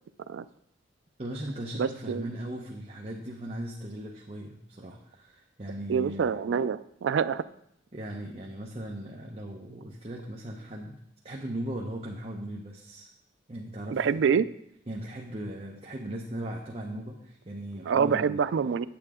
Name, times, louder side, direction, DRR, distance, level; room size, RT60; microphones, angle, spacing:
voice 1, 1.2-6.3 7.9-11.0 11.2-13.1 13.5-14.3 14.9-18.4, right 1 dB, 35° right, -1 dB, 0.8 m, -38 dB
voice 2, 1.8-2.3 5.9-7.4 13.9-14.5 17.9-18.9, right 6 dB, 80° right, 15 dB, 0.3 m, -26 dB
8.9 x 8.8 x 3.6 m, 0.73 s
head